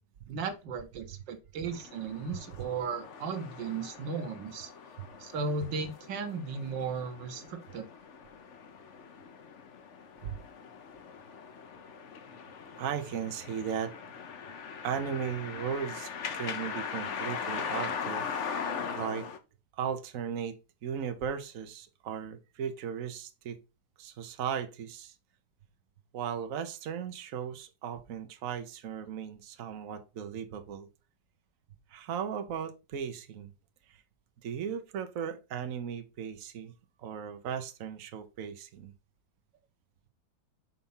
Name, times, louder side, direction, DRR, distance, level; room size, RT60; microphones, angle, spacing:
voice 1, 0.3-4.7 5.2-7.9, right 4 dB, 90° right, 1.7 m, -36 dB
sound 1, 1.7-19.4, left 6 dB, 50° left, 1.0 m, -40 dB
voice 2, 12.8-13.9 14.8-18.3 19.0-19.3 19.8-20.5 20.8-23.6 24.0-25.1 26.1-30.9 31.9-33.5 34.4-36.7 37.0-38.9, right 8 dB, 55° right, 1.2 m, -36 dB
5.8 x 4.2 x 5.5 m
omnidirectional pair, 1.9 m